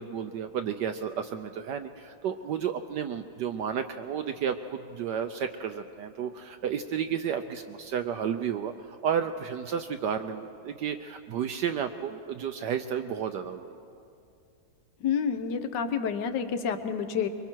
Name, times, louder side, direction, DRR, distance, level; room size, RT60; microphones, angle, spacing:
voice 1, 0.0-13.8, right 8 dB, 70° right, 7 dB, 1.1 m, -32 dB
voice 2, 15.0-17.3, left 7 dB, 65° left, 9 dB, 1.5 m, -29 dB
25.0 x 23.0 x 4.5 m, 2.5 s
omnidirectional pair, 2.2 m